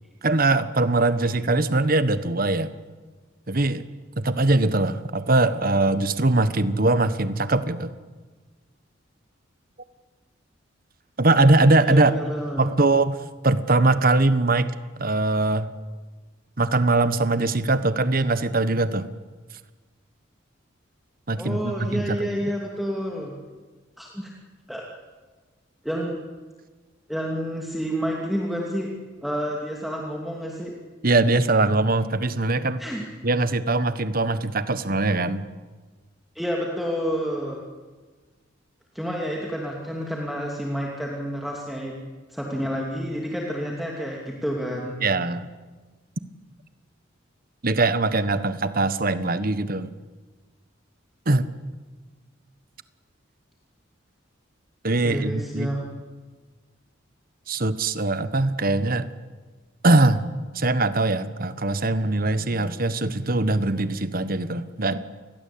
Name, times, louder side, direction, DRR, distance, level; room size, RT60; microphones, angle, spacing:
voice 1, 0.2-2.7 3.5-3.8 4.2-7.9 11.2-12.1 12.6-13.2 13.4-14.7 15.0-15.7 16.6-19.1 21.3-22.4 31.0-32.8 33.2-35.4 45.0-45.5 47.6-49.9 51.3-51.5 54.8-55.7 57.5-59.1 59.8-60.2 60.5-65.0, right 2 dB, 50° right, 12 dB, 1.4 m, -21 dB
voice 2, 11.8-12.7 21.4-23.4 24.0-24.3 24.7-24.8 25.8-26.2 27.1-28.9 29.2-30.7 32.8-33.1 36.3-37.6 38.9-41.9 42.3-45.0 55.0-56.0, equal, ahead, -2 dB, 2.8 m, -29 dB
29.5 x 21.5 x 8.7 m, 1.3 s
head